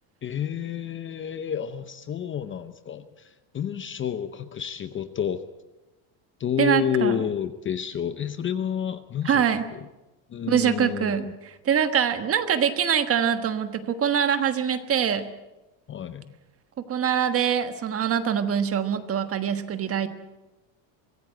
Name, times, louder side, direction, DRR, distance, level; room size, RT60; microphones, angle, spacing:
voice 1, 0.2-5.4 6.4-9.4 9.7-9.8 10.3-11.3 15.9-16.3, left 8 dB, 25° left, 10 dB, 0.7 m, -30 dB
voice 2, 6.6-7.1 9.2-9.6 10.5-15.3 16.8-20.1, right 8 dB, 30° right, 9 dB, 1.3 m, -24 dB
24.0 x 15.5 x 7.8 m, 1.1 s
cardioid pair, 155°, 47 cm